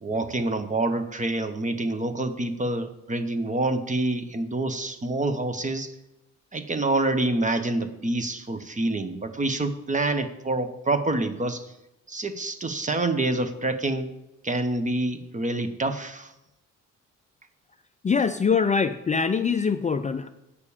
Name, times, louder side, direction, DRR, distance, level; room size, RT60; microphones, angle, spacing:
voice 1, 0.0-5.9 6.5-11.7 12.1-14.1 14.4-16.3, right 2 dB, 25° right, 10 dB, 1.0 m, -27 dB
voice 2, 18.0-20.3, left 5 dB, 25° left, 9 dB, 0.5 m, -23 dB
8.5 x 6.5 x 7.2 m, 0.91 s
cardioid pair, 90°, 30 cm